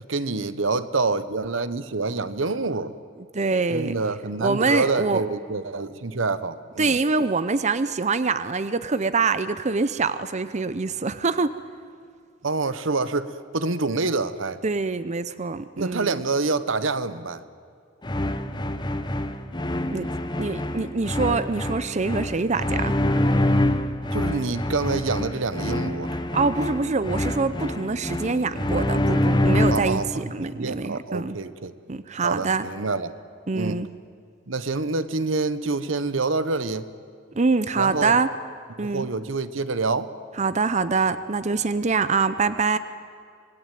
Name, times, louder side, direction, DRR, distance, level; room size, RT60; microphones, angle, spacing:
voice 1, 0.0-2.9 3.7-7.0 12.4-14.6 15.8-17.4 24.1-26.1 29.7-31.7 32.2-33.1 33.5-33.8 34.5-36.9 37.7-38.2 38.8-40.1, right 3 dB, 80° right, 14 dB, 1.1 m, -27 dB
voice 2, 3.3-3.9 4.4-5.2 6.8-11.6 14.6-16.2 19.9-20.1 20.4-22.9 26.3-31.4 31.9-32.7 33.5-33.9 37.3-38.3 38.8-39.1 40.4-42.8, right 4 dB, 35° right, 13 dB, 0.7 m, -24 dB
sound 1, 18.0-30.1, left 1 dB, 25° left, 1.2 m, -25 dB
25.5 x 20.5 x 9.2 m, 2.3 s
head